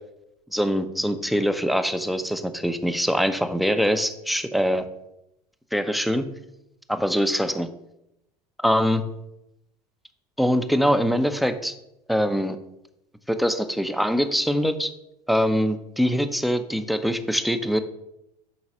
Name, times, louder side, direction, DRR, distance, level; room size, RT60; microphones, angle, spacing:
voice 1, 0.5-4.9 5.7-6.3 6.9-7.7 8.6-9.0 10.4-11.7 12.1-12.6 13.3-14.9 15.3-17.8, equal, ahead, 9 dB, 0.4 m, -23 dB
6.0 x 3.9 x 4.1 m, 0.85 s
hypercardioid pair, 80°, 21 cm